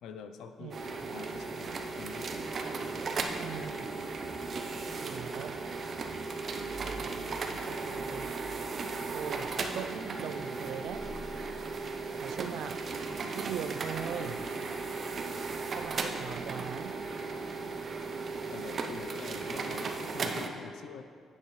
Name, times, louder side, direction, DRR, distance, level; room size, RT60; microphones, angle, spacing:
voice 1, 0.0-2.3 18.5-21.0, left 6 dB, 80° left, 8 dB, 0.5 m, -46 dB
sound 1, 0.7-20.5, right 4 dB, 50° right, 0.7 m, -36 dB
voice 2, 3.4-3.9 5.0-5.6 7.7-8.3 9.1-11.1 12.2-12.8 13.3-14.4 15.8-17.0, right 8 dB, 75° right, 12 dB, 0.4 m, -40 dB
10.0 x 7.7 x 3.1 m, 2.2 s
cardioid pair, 90°, 0 cm